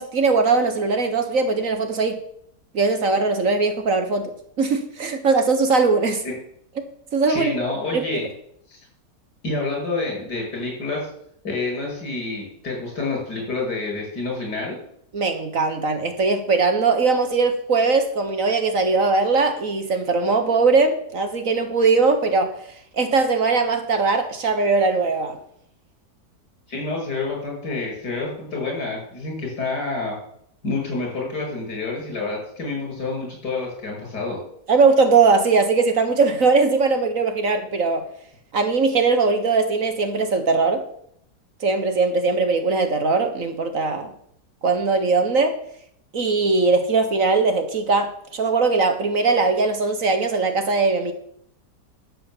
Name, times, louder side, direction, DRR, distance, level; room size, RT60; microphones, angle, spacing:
voice 1, 0.0-2.2 2.7-4.3 4.6-6.2 7.1-7.5 7.9-8.2 15.1-22.5 22.9-25.4 34.7-38.0 38.5-40.8 41.6-44.1 44.6-45.5 46.1-51.1, right 4 dB, 55° right, 8 dB, 1.7 m, -20 dB
voice 2, 7.3-8.3 8.7-8.8 9.4-11.1 11.4-14.8 26.7-30.2 30.6-34.4, left 3 dB, 75° left, -1 dB, 6.5 m, -28 dB
11.5 x 7.9 x 7.3 m, 0.68 s
omnidirectional pair, 1.8 m